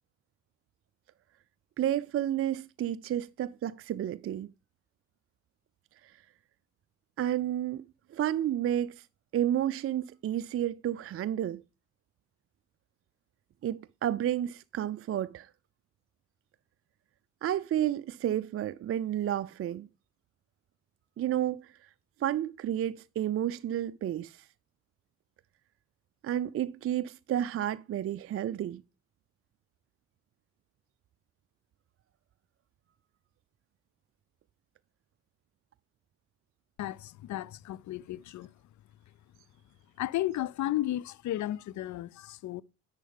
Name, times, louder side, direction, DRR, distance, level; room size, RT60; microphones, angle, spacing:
voice 1, 1.8-4.5 7.2-7.9 8.1-9.0 9.3-11.6 13.6-15.5 17.4-19.9 21.2-21.7 22.2-24.4 26.2-28.8, right 11 dB, 35° right, 0.4 m, -31 dB
voice 2, 36.8-38.5 40.0-42.6, left 14 dB, 50° left, 0.5 m, -34 dB
10.5 x 8.0 x 3.5 m
hypercardioid pair, 45°, 39 cm